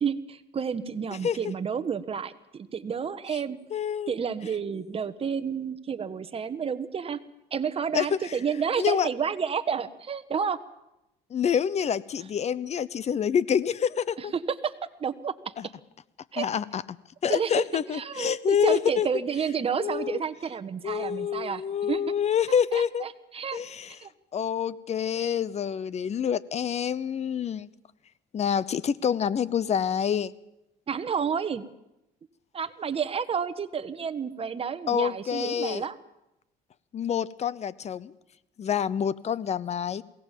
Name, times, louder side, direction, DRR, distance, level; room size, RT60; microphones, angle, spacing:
voice 1, 0.0-3.6 4.1-7.2 7.5-10.6 14.2-14.7 15.0-15.3 16.3-16.5 17.3-17.7 17.9-22.0 22.7-23.6 24.0-24.1 30.9-31.6 32.5-36.0, right 7 dB, 35° right, 12 dB, 1.3 m, -30 dB
voice 2, 3.7-4.1 7.9-8.3 8.8-9.1 11.3-14.3 15.6-15.7 16.4-17.0 17.2-19.1 19.8-20.2 20.8-23.0 23.5-24.0 24.3-27.7 28.3-30.3 34.9-35.9 36.9-38.1 38.6-40.0, left 8 dB, 40° left, 19 dB, 0.8 m, -27 dB
22.5 x 17.5 x 7.5 m, 0.87 s
cardioid pair, 110°, 17 cm